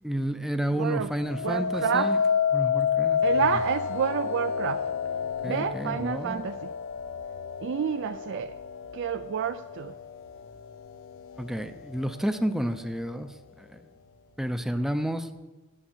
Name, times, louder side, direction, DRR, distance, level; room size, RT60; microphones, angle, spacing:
voice 1, 0.0-2.2 2.5-3.5 5.4-6.5 11.4-13.8 14.4-15.3, equal, ahead, 0.5 m, -31 dB
voice 2, 0.8-1.1 1.4-2.1 3.2-4.9 5.4-6.7 7.6-8.6 8.9-9.9, right 8 dB, 60° right, 0.3 m, -29 dB
sound 1, 1.2-10.4 10.9-11.4, left 7 dB, 65° left, 0.3 m, -29 dB
8.8 x 7.7 x 7.2 m
head